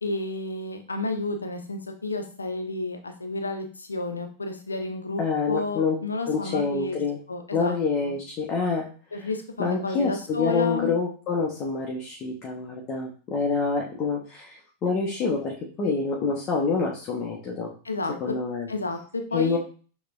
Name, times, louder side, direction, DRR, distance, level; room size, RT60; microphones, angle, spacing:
voice 1, 0.0-7.0 7.3-7.8 8.0-8.2 9.1-10.9 17.8-18.1 18.7-19.6, left 3 dB, 80° left, 6 dB, 0.7 m, -31 dB
voice 2, 5.2-5.9 6.3-7.2 7.5-8.9 9.6-17.7 18.2-18.7 19.3-19.6, left 4 dB, 30° left, -1 dB, 0.9 m, -27 dB
6.4 x 3.0 x 2.5 m, 0.39 s
figure-of-eight pair, 90°, 0 cm